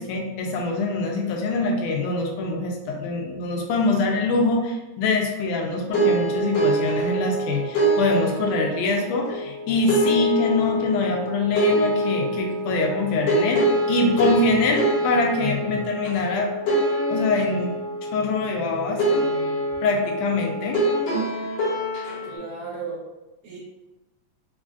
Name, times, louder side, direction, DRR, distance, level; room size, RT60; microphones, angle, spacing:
voice 1, 0.0-16.5 17.1-17.8 18.1-19.0 19.8-20.8, left 3 dB, 85° left, 1 dB, 2.1 m, -24 dB
sound 1, 5.9-22.4, right 1 dB, 65° left, 1.8 m, -25 dB
voice 2, 18.9-19.8 22.2-23.0 23.4-23.6, right 4 dB, 70° right, -6 dB, 2.2 m, -36 dB
5.2 x 2.4 x 2.4 m, 1.1 s
omnidirectional pair, 3.5 m